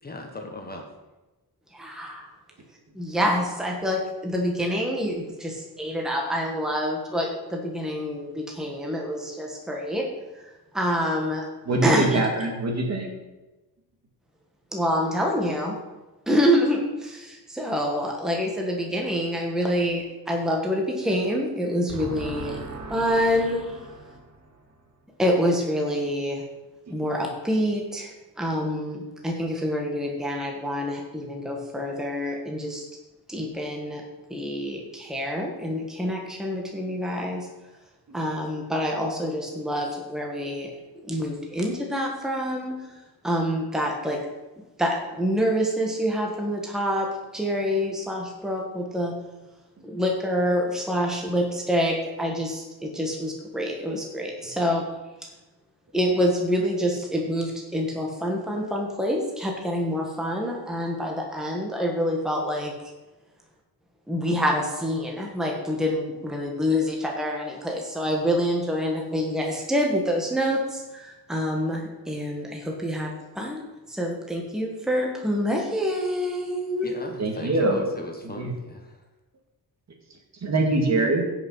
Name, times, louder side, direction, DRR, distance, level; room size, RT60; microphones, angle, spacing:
voice 1, 0.0-0.9 76.8-79.0, left 1 dB, 25° left, 2 dB, 1.3 m, -37 dB
voice 2, 1.7-2.3 2.9-10.1 10.7-11.5 11.8-12.2 14.7-15.8 16.3-23.6 25.2-26.4 26.9-32.8 33.3-34.0 34.3-37.5 38.1-40.7 41.1-42.7 43.2-44.2 44.8-47.1 47.3-49.1 49.8-54.8 55.9-62.7 64.1-73.1 73.3-76.9, equal, ahead, 0 dB, 1.4 m, -26 dB
voice 3, 11.7-13.1 21.9-23.3 24.1-24.2 27.0-27.1 77.2-77.8 78.4-78.5 80.4-81.2, right 2 dB, 45° right, 1 dB, 2.1 m, -25 dB
16.0 x 5.8 x 5.5 m, 1.1 s
wide cardioid pair, 175°, 39 cm